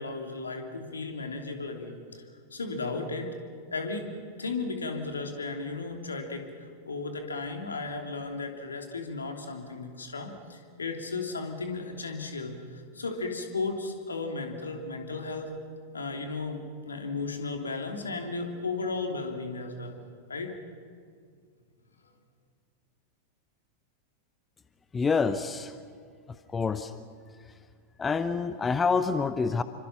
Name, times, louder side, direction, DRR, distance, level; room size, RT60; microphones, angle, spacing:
voice 1, 0.0-2.2 2.5-3.3 3.7-6.4 6.8-15.5 15.9-20.0 20.3-20.5, left 3 dB, 75° left, 3 dB, 3.1 m, -35 dB
voice 2, 24.9-25.7 26.5-26.9 28.0-29.6, left 5 dB, 15° left, 12 dB, 0.9 m, -27 dB
27.5 x 25.0 x 6.0 m, 2.1 s
figure-of-eight pair, 90°, 0 cm